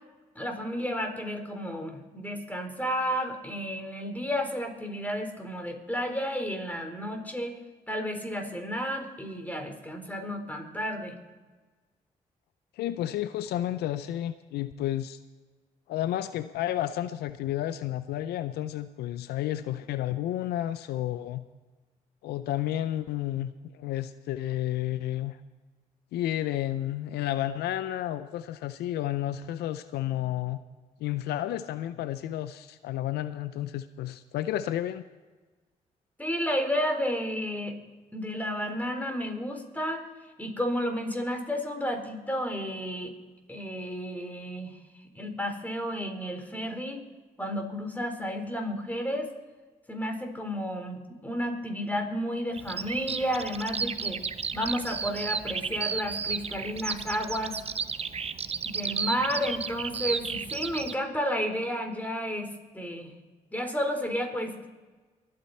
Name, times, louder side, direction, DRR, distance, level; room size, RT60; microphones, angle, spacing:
voice 1, 0.3-7.6 7.9-11.1 36.2-37.8 38.1-40.1 40.4-43.1 43.5-44.8 45.1-47.0 47.4-49.3 49.9-54.2 54.5-57.6 58.6-63.1 63.5-64.7, equal, 10° left, 4 dB, 4.2 m, -32 dB
voice 2, 12.8-15.2 15.9-21.5 22.2-25.4 26.1-30.6 31.0-35.0, left 13 dB, 85° left, 13 dB, 0.5 m, -31 dB
Bird vocalization bird call bird song, 52.5-60.9, right 5 dB, 40° right, 0.7 m, -33 dB
23.5 x 8.8 x 4.3 m, 1.3 s
supercardioid pair, 50°, 16 cm